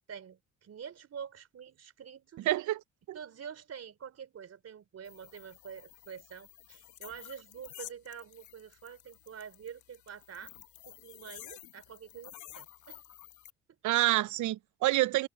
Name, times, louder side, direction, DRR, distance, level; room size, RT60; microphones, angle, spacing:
voice 1, 0.1-2.5 3.1-10.5 10.9-13.0, right 7 dB, 55° right, 3.4 m, -47 dB
voice 2, 2.4-2.8 3.1-3.2 13.8-15.3, right 16 dB, 75° right, 0.6 m, -27 dB
sound 1, 5.0-13.5, left 13 dB, 80° left, 1.0 m, -52 dB
cardioid pair, 90°, 30 cm